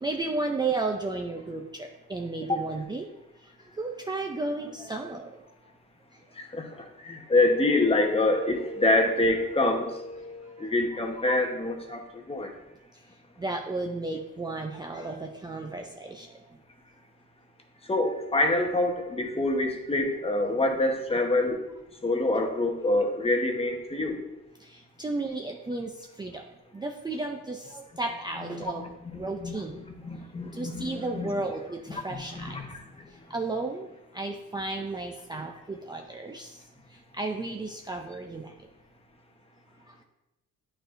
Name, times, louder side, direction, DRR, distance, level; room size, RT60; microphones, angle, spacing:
voice 1, 0.0-3.1 3.8-5.3 6.6-6.7 13.4-16.3 24.6-25.9 26.2-26.4 26.7-28.9 29.1-29.8 30.5-32.6 33.3-33.9 34.1-36.6 37.1-38.5 39.9-40.0, right 3 dB, 15° right, 2 dB, 0.5 m, -33 dB
voice 2, 6.4-12.5 17.9-21.6 22.0-24.2 28.4-31.3 32.1-32.8, left 2 dB, 20° left, 3 dB, 1.0 m, -26 dB
9.0 x 4.4 x 2.6 m, 0.93 s
cardioid pair, 90°, 30 cm